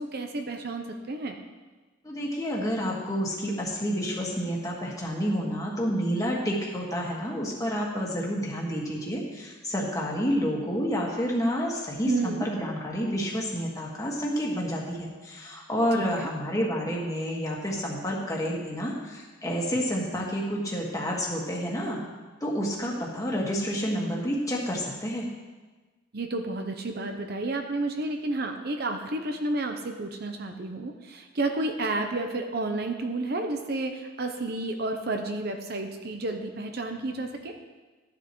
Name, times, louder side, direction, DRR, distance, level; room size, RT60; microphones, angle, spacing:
voice 1, 0.0-1.4 12.0-12.5 15.9-16.3 26.1-37.6, right 2 dB, 50° right, 5 dB, 0.7 m, -31 dB
voice 2, 2.0-22.0 22.4-25.2, equal, 15° left, -3 dB, 1.7 m, -29 dB
12.0 x 10.5 x 3.1 m, 1.3 s
head